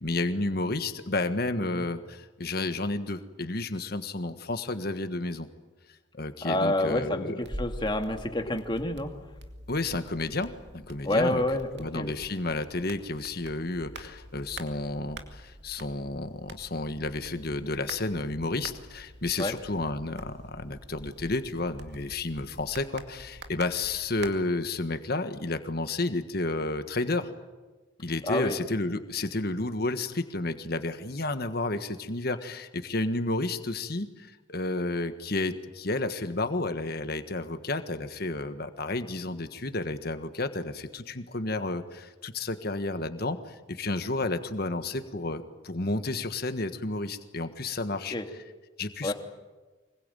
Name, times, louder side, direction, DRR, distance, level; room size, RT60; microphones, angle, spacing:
voice 1, 0.0-5.5 6.1-7.4 9.7-11.4 11.7-27.3 28.0-48.2 48.8-49.1, left 2 dB, 50° left, 9 dB, 1.6 m, -31 dB
voice 2, 6.4-9.1 11.0-12.1 19.4-19.6 28.2-28.6 48.1-48.3 49.0-49.1, left 1 dB, 25° left, 5 dB, 2.0 m, -28 dB
sound 1, 7.4-24.3, right 1 dB, 60° right, 2.4 m, -46 dB
25.0 x 22.0 x 9.1 m, 1.2 s
head